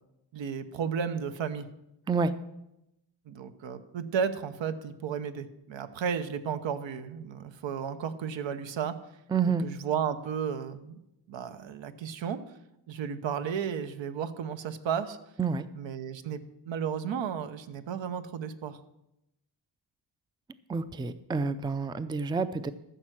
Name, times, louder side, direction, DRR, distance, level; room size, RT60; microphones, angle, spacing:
voice 1, 0.3-1.7 3.3-9.0 9.6-11.0 11.3-12.4 12.9-15.2 15.8-18.8, right 7 dB, 80° right, 10 dB, 1.0 m, -33 dB
voice 2, 2.1-2.4 9.3-9.7 15.4-15.7 20.7-22.7, right 5 dB, 10° right, 13 dB, 0.4 m, -28 dB
14.0 x 6.7 x 6.1 m, 0.87 s
cardioid pair, 115°, 45 cm